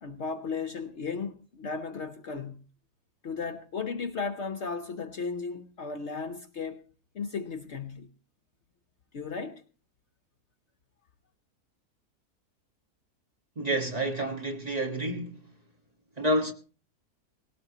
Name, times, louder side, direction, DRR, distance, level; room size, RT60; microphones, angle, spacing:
voice 1, 0.0-2.6 3.2-6.8 7.1-8.1 9.1-9.6, left 5 dB, 55° left, 1.0 m, -35 dB
voice 2, 13.6-15.5 16.2-16.5, right 1 dB, 25° right, 1.5 m, -29 dB
19.0 x 17.0 x 2.9 m
omnidirectional pair, 1.6 m